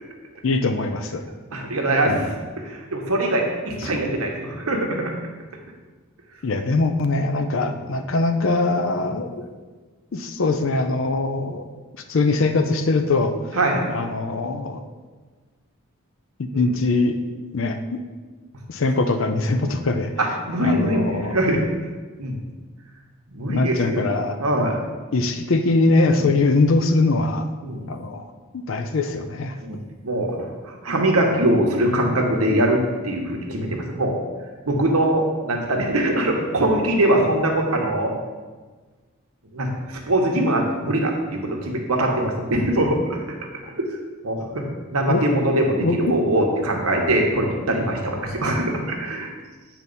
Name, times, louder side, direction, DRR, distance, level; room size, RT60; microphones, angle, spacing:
voice 1, 0.4-1.2 2.0-2.3 3.8-3.9 6.4-9.5 10.1-11.6 12.1-13.4 13.9-14.8 16.5-17.2 17.5-18.0 18.7-20.1 20.6-21.4 23.5-24.4 25.1-27.5 27.9-29.6 45.1-45.4 45.8-46.1, left 3 dB, 60° left, 8 dB, 0.5 m, -22 dB
voice 2, 1.5-2.3 2.6-5.1 7.6-7.7 9.0-9.2 13.5-13.9 16.5-16.7 20.2-21.6 22.2-22.3 23.3-24.0 24.4-24.8 26.1-26.3 27.6-27.9 29.6-29.8 30.0-30.5 30.8-32.8 33.0-34.2 34.7-38.1 39.5-39.7 40.1-43.4 43.7-43.9 44.2-49.3, right 1 dB, 80° right, 1 dB, 1.1 m, -22 dB
8.1 x 2.9 x 5.3 m, 1.4 s
head